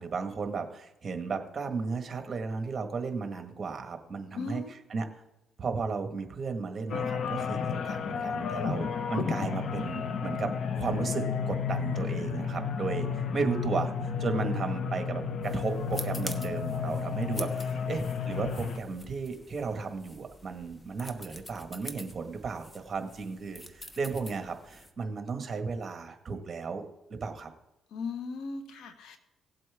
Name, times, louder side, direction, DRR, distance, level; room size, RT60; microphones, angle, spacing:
voice 1, 0.0-4.6 4.9-5.0 5.6-26.8 27.1-27.5, right 4 dB, 40° right, 5 dB, 1.6 m, -34 dB
voice 2, 4.3-4.7 27.9-29.2, left 4 dB, 85° left, 7 dB, 1.3 m, -37 dB
sound 1, 6.9-18.8, left 6 dB, 65° left, 0.9 m, -32 dB
sound 2, 15.4-24.9, left 1 dB, 15° left, 1.1 m, -46 dB
18.0 x 7.7 x 3.6 m, 0.93 s
cardioid pair, 90°, 0 cm